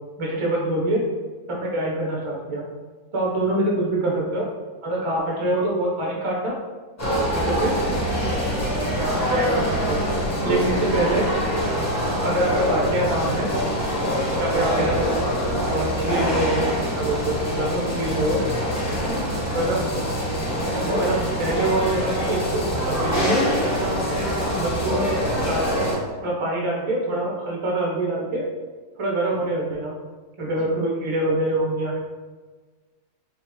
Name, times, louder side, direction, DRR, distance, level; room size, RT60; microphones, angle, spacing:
voice 1, 0.2-1.0 1.5-2.7 3.1-4.5 4.8-6.6 7.3-7.7 8.7-10.1 10.4-11.2 12.2-13.5 14.4-15.2 15.7-18.4 19.5-19.8 20.7-23.4 24.5-25.1 25.4-25.9 26.2-28.4 29.0-30.0 30.4-32.0, right 1 dB, 30° right, -3 dB, 0.5 m, -25 dB
voice 2, 3.5-3.8 10.5-11.3 19.0-19.4 30.5-30.8, equal, 80° right, 1 dB, 1.2 m, -33 dB
sound 1, 7.0-26.0, equal, 15° left, 0.8 m, -24 dB
4.4 x 2.7 x 3.0 m, 1.4 s
omnidirectional pair, 1.7 m